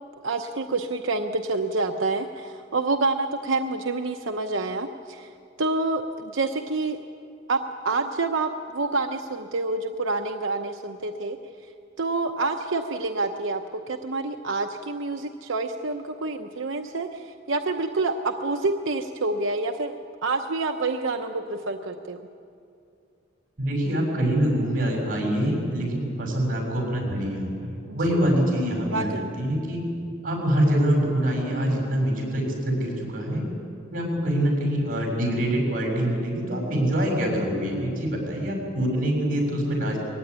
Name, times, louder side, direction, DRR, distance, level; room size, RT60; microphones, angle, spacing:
voice 1, 0.2-7.0 7.5-11.4 12.0-13.6 13.9-20.0 20.2-22.2 27.9-28.3 28.9-29.3, right 3 dB, 90° right, 5 dB, 0.8 m, -27 dB
voice 2, 23.6-27.7 27.9-29.8 30.2-33.5 33.9-40.0, right 1 dB, 45° right, 0 dB, 6.8 m, -25 dB
22.0 x 16.0 x 9.8 m, 2.5 s
head